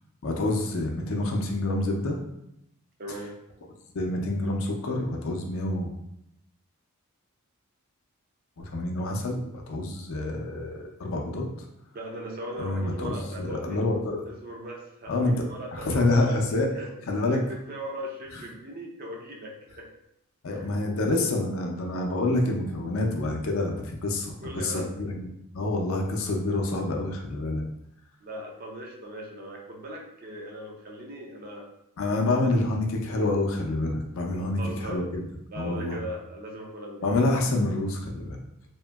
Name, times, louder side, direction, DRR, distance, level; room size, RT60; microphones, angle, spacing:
voice 1, 0.2-2.2 3.9-5.9 8.6-11.5 12.6-14.3 15.1-15.5 15.7-16.7 17.1-17.4 18.3-18.4 20.4-25.3 25.5-27.6 32.0-35.2 35.6-36.0 37.0-38.4, left 2 dB, 60° left, 1 dB, 0.4 m, -27 dB
voice 2, 3.0-3.4 11.9-13.8 14.2-16.4 16.7-16.9 17.3-19.9 20.5-20.7 24.4-24.9 28.2-31.7 34.6-35.1 35.5-37.1, right 1 dB, 40° right, 0 dB, 0.5 m, -39 dB
2.8 x 2.6 x 2.3 m, 0.80 s
head